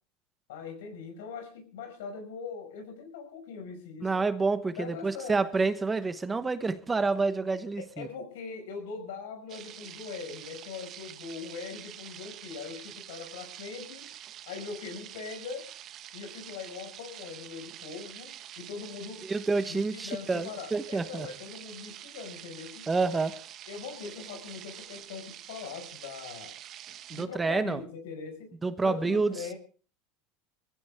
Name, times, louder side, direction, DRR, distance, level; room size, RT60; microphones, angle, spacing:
voice 1, 0.5-4.2 4.8-5.4 7.8-14.1 14.5-15.7 16.1-19.3 19.7-22.9 23.7-26.6 27.1-28.5 28.8-29.6, left 5 dB, 90° left, 5.5 m, -41 dB
voice 2, 4.0-8.1 19.2-21.3 22.9-23.4 27.1-27.8 28.6-29.3, right 3 dB, 15° right, 1.1 m, -28 dB
sound 1, 9.5-27.3, right 11 dB, 45° right, 1.1 m, -46 dB
21.5 x 15.0 x 3.6 m
supercardioid pair, 130°, 0 cm